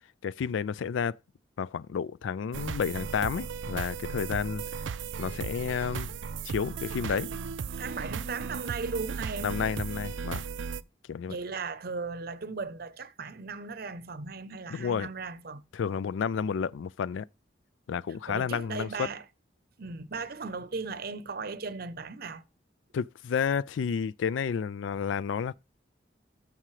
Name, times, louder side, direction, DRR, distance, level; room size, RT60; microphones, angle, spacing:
voice 1, 0.2-1.1 1.6-4.6 5.2-6.1 6.4-7.3 9.4-10.4 11.1-11.4 14.7-15.1 15.7-17.2 17.9-19.1 22.9-25.5, left 6 dB, 90° left, 0.4 m, -31 dB
sound 1, 2.5-10.8, right 6 dB, 90° right, 0.4 m, -36 dB
voice 2, 7.8-9.5 11.3-15.6 18.3-19.2 19.8-22.4, right 4 dB, 55° right, 0.7 m, -37 dB
13.0 x 4.9 x 3.2 m
head